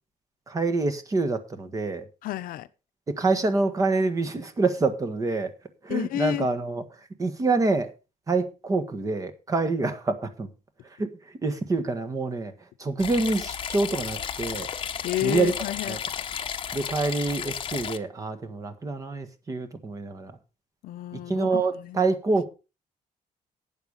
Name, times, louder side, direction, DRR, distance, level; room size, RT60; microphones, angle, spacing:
voice 1, 0.5-2.0 3.1-5.5 5.8-6.8 7.2-7.9 8.3-10.5 11.0-11.1 11.4-12.5 12.8-14.7 15.2-15.5 15.9-16.0 16.7-20.3 21.3-22.5, right 3 dB, 25° right, 1.5 m, -26 dB
voice 2, 2.2-2.7 5.9-6.5 15.0-16.0 20.8-22.0, left 15 dB, 90° left, 0.8 m, -30 dB
sound 1, 13.0-18.0, left 8 dB, 35° left, 0.9 m, -33 dB
11.5 x 8.8 x 5.3 m
cardioid pair, 170°, 14 cm